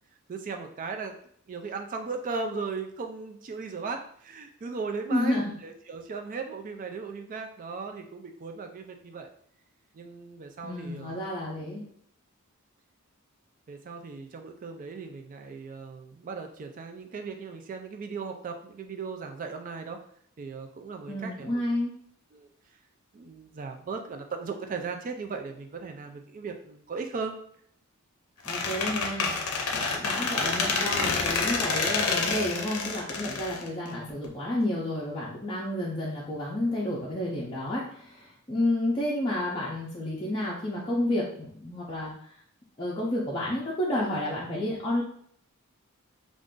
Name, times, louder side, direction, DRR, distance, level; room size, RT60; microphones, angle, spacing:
voice 1, 0.3-1.1 1.5-9.3 9.9-11.2 13.7-20.0 20.4-21.6 22.3-22.5 23.1-27.3, right 4 dB, 35° right, 5 dB, 0.3 m, -37 dB
voice 2, 5.1-5.5 10.6-11.8 21.1-21.9 28.4-29.3 29.7-42.3 42.8-45.0, left 1 dB, 20° left, -6 dB, 0.5 m, -30 dB
Squeak, 28.5-34.3, left 4 dB, 70° left, 0.6 m, -28 dB
2.5 x 2.4 x 3.6 m, 0.63 s
head